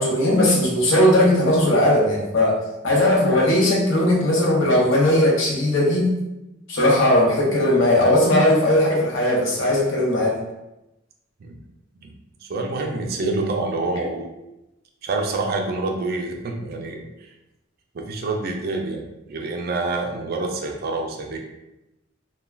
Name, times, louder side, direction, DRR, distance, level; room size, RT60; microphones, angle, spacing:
voice 1, 0.0-2.6 2.8-6.1 6.7-10.4, left 1 dB, 70° left, -3 dB, 0.7 m, -18 dB
voice 2, 12.4-14.3 15.0-17.3 17.9-21.4, right 3 dB, 50° right, 2 dB, 0.4 m, -27 dB
2.3 x 2.2 x 3.2 m, 0.95 s
head